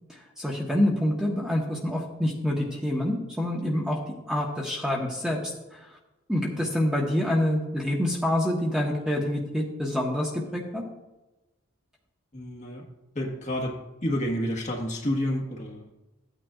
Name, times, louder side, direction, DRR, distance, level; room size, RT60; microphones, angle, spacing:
voice 1, 0.1-4.0 4.3-5.4 5.7-5.8 6.3-10.8, left 1 dB, 5° right, -2 dB, 1.2 m, -27 dB
voice 2, 12.3-12.9 13.1-13.7 14.0-15.8, equal, 35° left, 0 dB, 1.4 m, -29 dB
14.0 x 9.0 x 2.4 m, 1.0 s
head